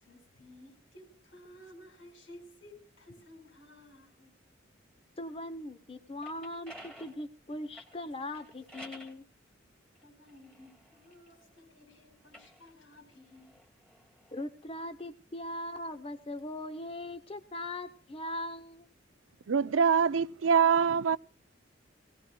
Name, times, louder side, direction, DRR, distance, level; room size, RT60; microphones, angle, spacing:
voice 1, 0.0-4.3 10.0-13.6, left 1 dB, 90° left, 5.4 m, -55 dB
voice 2, 5.2-9.2 14.3-18.9, left 1 dB, 30° left, 0.8 m, -40 dB
sound 1, 6.0-9.2 9.9-11.6 12.2-14.5, equal, 5° left, 2.2 m, -53 dB
voice 3, 19.5-21.2, right 6 dB, 85° right, 0.5 m, -24 dB
20.5 x 17.5 x 2.3 m
head